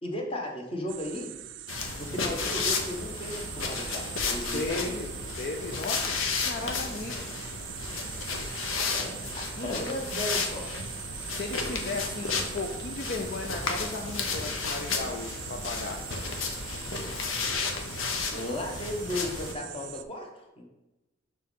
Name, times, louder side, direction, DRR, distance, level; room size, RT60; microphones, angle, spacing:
voice 1, 0.0-1.3 1.7-5.0 8.6-11.0 18.3-20.6, left 1 dB, 25° left, 2 dB, 1.1 m, -36 dB
sound 1, 0.9-20.0, right 12 dB, 60° right, 0.4 m, -42 dB
sound 2, 1.7-19.5, left 4 dB, 90° left, 0.9 m, -33 dB
voice 2, 4.5-5.1 5.4-7.3 9.6-9.8 11.3-16.0, left 3 dB, 50° left, 2 dB, 0.5 m, -35 dB
6.2 x 4.5 x 5.4 m, 1.0 s
head